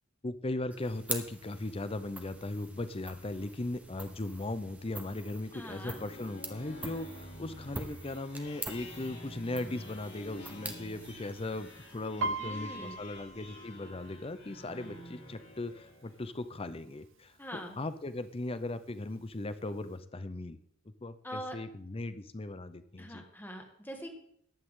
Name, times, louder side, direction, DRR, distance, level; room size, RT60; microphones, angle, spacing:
voice 1, 0.2-20.6 21.0-23.2, left 2 dB, 25° left, 12 dB, 0.6 m, -38 dB
sound 1, 0.7-12.4, right 2 dB, 5° right, 1.1 m, -45 dB
sound 2, 5.4-16.3, left 1 dB, 55° left, 3.0 m, -49 dB
voice 2, 5.5-6.0 12.4-12.9 17.4-17.8 21.2-21.6 23.0-24.1, equal, 10° left, 3 dB, 1.9 m, -43 dB
Piano, 12.2-15.9 16.2-16.6 17.0-17.6 18.2-18.3 18.5-19.5 19.9-20.0, right 2 dB, 65° right, 0.8 m, -40 dB
14.5 x 10.5 x 3.7 m, 0.68 s
head